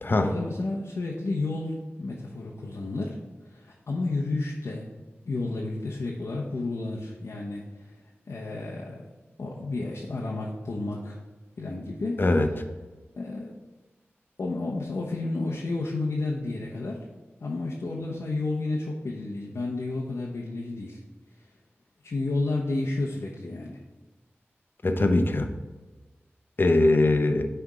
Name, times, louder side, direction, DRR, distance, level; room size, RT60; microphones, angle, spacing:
voice 1, 0.2-3.2 3.5-4.9 5.2-7.9 8.3-9.0 9.4-11.2 11.6-12.2 13.2-13.5 14.4-17.1 17.4-21.0 21.4-21.5 22.0-23.8, left 2 dB, 85° left, -3 dB, 0.9 m, -31 dB
voice 2, 24.8-25.5 26.6-27.5, left 2 dB, 50° left, 7 dB, 0.7 m, -21 dB
9.6 x 3.4 x 4.9 m, 1.2 s
wide cardioid pair, 60°, 5 cm